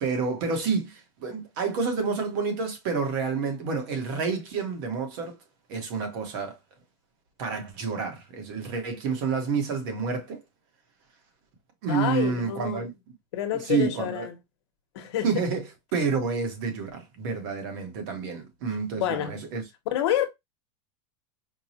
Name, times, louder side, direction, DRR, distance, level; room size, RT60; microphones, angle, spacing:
voice 1, 0.0-5.3 5.7-6.6 7.4-10.4 11.8-12.9 13.6-14.3 15.2-15.6 15.9-19.6, right 5 dB, 45° right, 1.1 m, -29 dB
voice 2, 11.9-12.8 13.3-14.4 14.9-15.3 19.0-19.5 19.9-20.3, left 11 dB, 60° left, 1.0 m, -28 dB
4.6 x 2.3 x 2.8 m
supercardioid pair, 175°, 16 cm